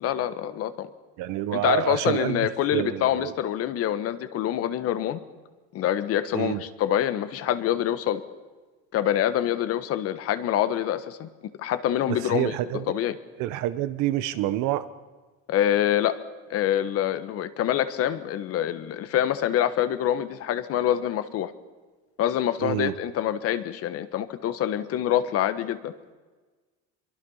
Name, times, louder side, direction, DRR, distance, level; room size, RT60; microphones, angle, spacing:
voice 1, 0.0-0.9 1.5-5.2 5.7-8.2 8.9-11.3 11.6-13.2 15.5-16.2 16.5-21.5 22.2-25.9, left 11 dB, 50° left, 12 dB, 1.5 m, -26 dB
voice 2, 1.2-3.3 6.3-6.6 12.1-12.8 13.4-14.8 22.6-22.9, right 13 dB, 65° right, 13 dB, 1.3 m, -27 dB
25.5 x 23.0 x 5.7 m, 1.3 s
cardioid pair, 150°, 31 cm